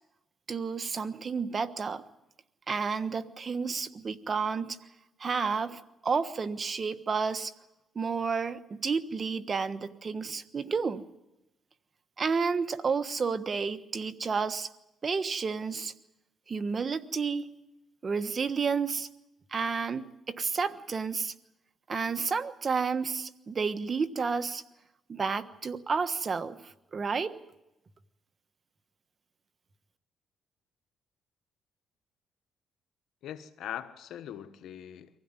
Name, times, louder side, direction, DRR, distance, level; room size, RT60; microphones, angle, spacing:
voice 1, 0.5-2.0 2.7-4.8 5.2-7.5 7.9-11.0 12.2-14.7 15.0-15.9 16.5-17.5 18.0-19.1 19.5-21.3 21.9-24.6 25.1-26.6 26.9-27.3, right 5 dB, 40° right, 1.3 m, -31 dB
voice 2, 33.2-35.2, left 10 dB, 80° left, 1.3 m, -41 dB
24.5 x 16.0 x 9.8 m
cardioid pair, 90°, 0 cm